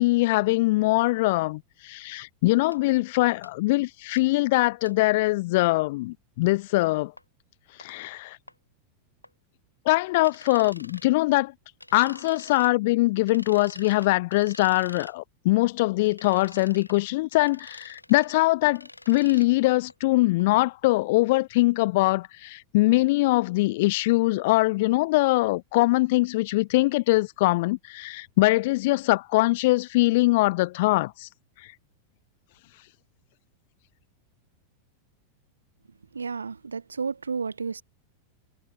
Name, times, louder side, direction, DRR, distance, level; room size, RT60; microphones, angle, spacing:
voice 1, 0.0-7.1 7.8-8.4 9.9-11.5 11.9-31.3, left 20 dB, 50° left, 0.4 m, -22 dB
sound 1, 2.7-2.8 3.4-3.5 4.2-4.3 4.9-5.0 6.5-6.6 7.2-7.3 7.8-7.9 8.5-8.6 9.2-9.3 10.2-11.1 11.8-12.7 13.3-15.1 16.0-17.0 17.3-18.3 18.7-19.5 19.9-20.0 20.4-20.5 20.9-21.0, left 1 dB, 85° left, 4.4 m, -46 dB
voice 2, 36.1-37.8, right 5 dB, 75° right, 1.6 m, -32 dB
figure-of-eight pair, 90°, 0 cm